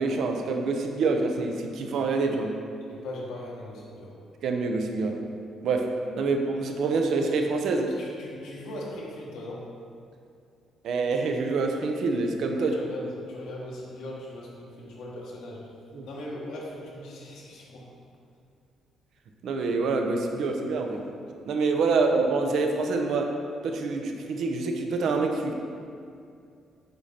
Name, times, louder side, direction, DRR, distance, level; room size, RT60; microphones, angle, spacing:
voice 1, 0.0-2.5 4.4-5.2 5.6-5.9 6.1-8.0 10.8-12.7 15.9-16.1 19.4-21.0 21.5-23.3 23.6-25.5, right 3 dB, 65° right, 3 dB, 0.8 m, -26 dB
voice 2, 2.9-4.1 7.9-9.7 12.6-15.7 16.0-17.9 21.9-22.0, left 1 dB, 85° left, -4 dB, 1.7 m, -39 dB
8.0 x 5.2 x 4.3 m, 2.4 s
cardioid pair, 125°, 0 cm